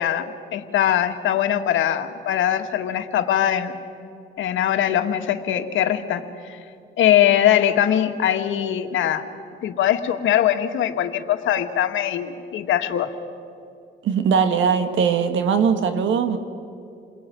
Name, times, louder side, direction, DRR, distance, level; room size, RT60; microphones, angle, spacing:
voice 1, 0.0-3.8 4.4-6.6 7.0-9.3 9.6-13.1, left 10 dB, 80° left, 7 dB, 1.9 m, -21 dB
voice 2, 14.0-16.4, right 6 dB, 75° right, 8 dB, 2.3 m, -20 dB
29.0 x 21.5 x 9.4 m, 2.5 s
cardioid pair, 90°, 20 cm